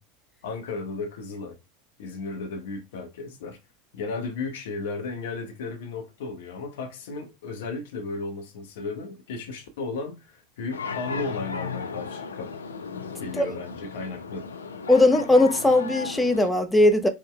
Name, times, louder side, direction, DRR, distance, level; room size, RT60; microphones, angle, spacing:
voice 1, 0.4-1.6 2.0-3.6 3.9-12.5 13.2-14.4, left 3 dB, 70° left, 0.8 m, -34 dB
sound 1, 10.7-16.5, left 5 dB, 85° left, 0.3 m, -36 dB
voice 2, 14.9-17.1, left 2 dB, 10° left, 0.6 m, -19 dB
3.3 x 2.1 x 3.7 m
hypercardioid pair, 85°, 0 cm